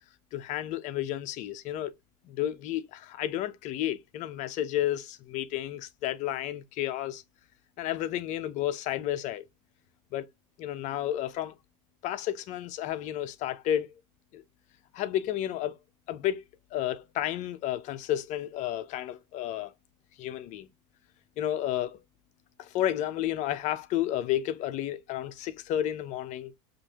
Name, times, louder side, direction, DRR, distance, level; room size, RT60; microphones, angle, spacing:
voice 1, 0.3-1.9 2.2-7.2 7.8-9.4 10.1-10.3 10.6-11.6 12.0-14.0 14.3-14.4 14.9-15.8 16.1-16.4 16.7-19.7 20.2-20.7 21.4-22.0 22.6-26.5, left 12 dB, 45° left, 0.7 m, -31 dB
5.2 x 2.6 x 2.8 m
supercardioid pair, 140°, 17 cm